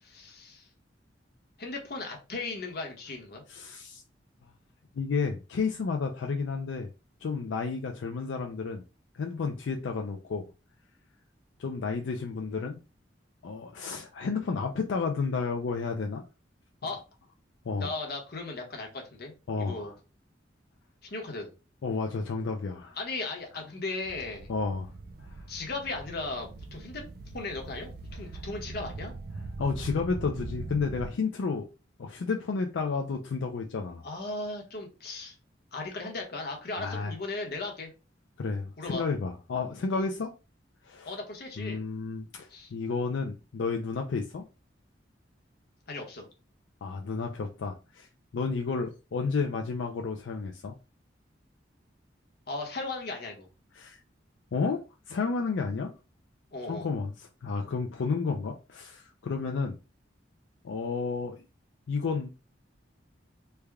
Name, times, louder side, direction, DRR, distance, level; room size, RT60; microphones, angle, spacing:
voice 1, 0.0-0.7 1.6-3.4 16.8-17.0 17.8-19.9 21.0-21.5 23.0-24.5 25.5-27.0 27.3-29.1 34.0-35.4 35.7-37.9 38.8-39.0 41.0-41.8 42.5-42.7 45.9-46.3 52.5-53.5 56.5-56.9, left 3 dB, 55° left, 1.0 m, -37 dB
voice 2, 3.5-4.0 4.9-6.9 7.2-8.8 9.1-10.5 11.6-12.8 13.4-16.2 17.7-17.9 19.5-19.9 21.8-23.0 24.5-24.9 29.6-31.7 32.0-34.0 36.8-37.1 38.4-40.3 40.8-41.2 41.6-44.4 46.8-48.1 48.3-50.7 53.8-54.0 54.5-55.9 56.7-59.8 60.6-61.4 61.9-62.3, left 4 dB, 80° left, 0.4 m, -31 dB
sound 1, 24.0-31.1, right 2 dB, 55° right, 0.4 m, -41 dB
3.3 x 2.2 x 3.4 m
head